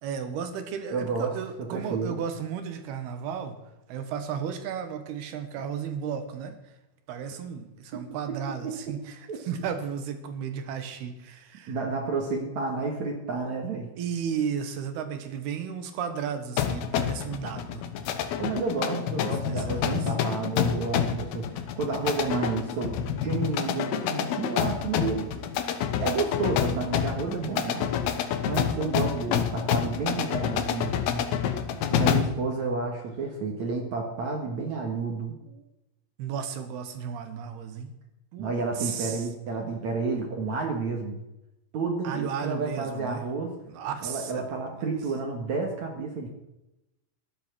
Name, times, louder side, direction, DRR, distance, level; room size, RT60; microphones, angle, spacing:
voice 1, 0.0-3.6 3.9-6.6 7.1-11.8 14.0-17.8 19.0-20.1 32.5-32.6 35.4-35.7 36.2-37.9 38.3-39.3 42.0-43.2 43.7-44.9, right 7 dB, 85° right, 8 dB, 3.5 m, -34 dB
voice 2, 0.9-1.3 1.7-2.2 9.3-9.4 11.7-13.9 18.4-25.3 26.0-27.9 28.5-31.3 31.9-35.4 38.4-41.2 41.7-43.6 44.0-46.3, right 4 dB, 55° right, 2 dB, 2.7 m, -30 dB
sound 1, 16.6-32.4, left 9 dB, 85° left, 3.1 m, -28 dB
15.0 x 12.0 x 6.3 m, 0.92 s
omnidirectional pair, 4.4 m